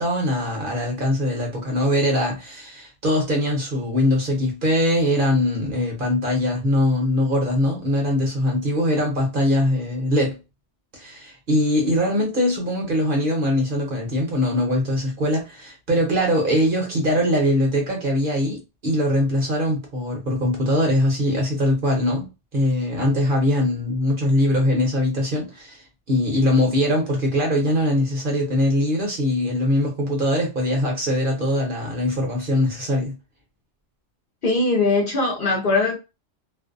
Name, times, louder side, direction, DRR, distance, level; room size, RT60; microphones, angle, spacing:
voice 1, 0.0-10.4 10.9-25.8 26.1-33.1, left 1 dB, 50° right, 0.8 m, -22 dB
voice 2, 34.4-36.0, left 3 dB, 55° left, 0.7 m, -20 dB
2.5 x 2.1 x 2.5 m
omnidirectional pair, 1.3 m